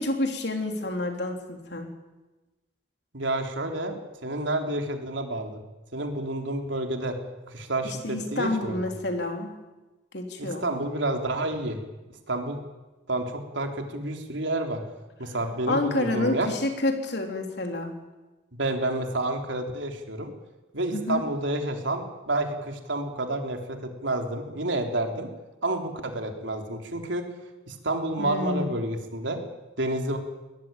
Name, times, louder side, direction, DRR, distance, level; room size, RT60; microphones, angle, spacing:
voice 1, 0.0-1.9 7.8-9.6 10.1-10.7 15.7-17.9 20.9-21.2 28.2-28.7, left 2 dB, 60° left, 4 dB, 3.6 m, -29 dB
voice 2, 3.1-5.6 5.9-7.2 7.5-8.9 10.4-11.8 12.3-12.6 13.1-14.8 15.2-16.5 18.5-20.3 20.7-25.3 25.6-27.2 27.7-29.4 29.8-30.2, right 2 dB, 80° right, 4 dB, 3.6 m, -29 dB
23.0 x 18.5 x 9.1 m, 1.1 s
head